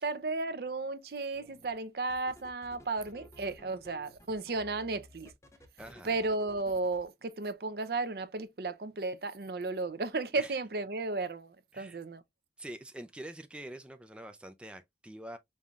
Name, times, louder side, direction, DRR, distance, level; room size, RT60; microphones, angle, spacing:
voice 1, 0.0-5.3 6.0-12.2, right 3 dB, 60° right, 0.6 m, -34 dB
sound 1, 1.3-1.7 2.1-7.0, left 1 dB, 15° left, 0.7 m, -55 dB
voice 2, 5.8-6.2 10.4-10.6 11.7-12.0 12.6-15.4, right 1 dB, 5° right, 0.3 m, -45 dB
5.4 x 3.1 x 2.4 m
head